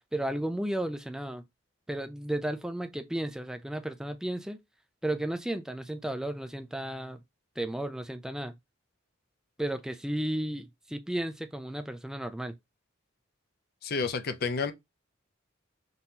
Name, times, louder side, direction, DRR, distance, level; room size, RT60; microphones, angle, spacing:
voice 1, 0.1-1.4 1.9-4.6 5.0-7.2 7.6-8.6 9.6-12.6, right 1 dB, 5° right, 0.4 m, -33 dB
voice 2, 13.8-14.7, left 4 dB, 50° left, 0.5 m, -30 dB
5.3 x 2.9 x 2.7 m
head